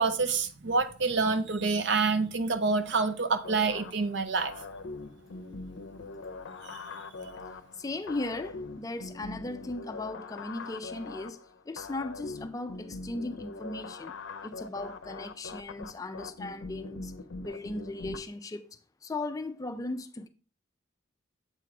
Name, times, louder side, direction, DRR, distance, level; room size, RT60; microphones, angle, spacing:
voice 1, 0.0-4.5 6.7-6.8, right 4 dB, 60° right, 0.6 m, -27 dB
sound 1, 3.4-18.2, left 3 dB, 75° left, 0.5 m, -42 dB
voice 2, 7.8-11.4 11.7-14.1 14.4-17.1 17.4-18.7 19.0-20.3, left 2 dB, 15° left, 0.3 m, -37 dB
7.5 x 3.3 x 4.9 m
head